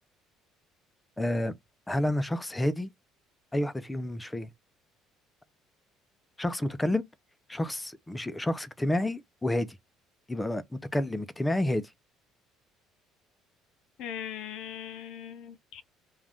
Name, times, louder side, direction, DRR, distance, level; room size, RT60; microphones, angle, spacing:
voice 1, 1.2-1.5 1.9-2.9 3.5-4.5 6.4-7.0 7.5-9.7 10.3-11.8, left 1 dB, 10° left, 0.4 m, -29 dB
voice 2, 14.0-15.8, left 9 dB, 70° left, 0.5 m, -40 dB
2.5 x 2.3 x 3.3 m
cardioid pair, 110°, 0 cm